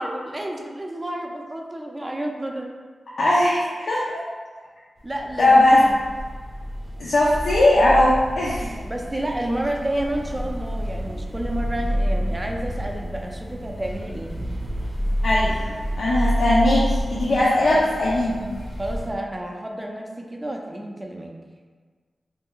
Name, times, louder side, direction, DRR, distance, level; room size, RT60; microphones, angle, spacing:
voice 1, 0.0-2.7 5.0-5.9 8.6-14.3 17.7-17.8 18.8-21.4, right 1 dB, 20° right, 1 dB, 0.4 m, -30 dB
voice 2, 3.2-4.0 5.4-5.8 7.0-8.7 15.2-15.7 16.0-18.4, left 1 dB, 85° left, -7 dB, 0.5 m, -19 dB
sound 1, 5.0-19.1, equal, 40° left, 0.6 m, -29 dB
sound 2, 11.6-16.1, right 1 dB, 80° right, 0.5 m, -38 dB
2.6 x 2.2 x 3.7 m, 1.5 s
wide cardioid pair, 95°, 0 cm